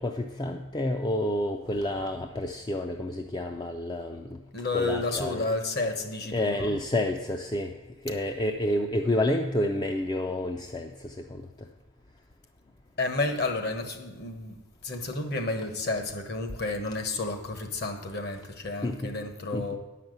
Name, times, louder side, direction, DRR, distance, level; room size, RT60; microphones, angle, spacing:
voice 1, 0.0-4.4 4.7-5.5 6.3-7.7 8.0-11.5 18.8-19.1 19.5-19.8, left 1 dB, 20° left, 4 dB, 0.4 m, -29 dB
voice 2, 4.5-6.7 13.0-14.5 14.8-19.8, left 2 dB, 50° left, 7 dB, 1.2 m, -31 dB
10.5 x 5.8 x 7.9 m, 1.1 s
head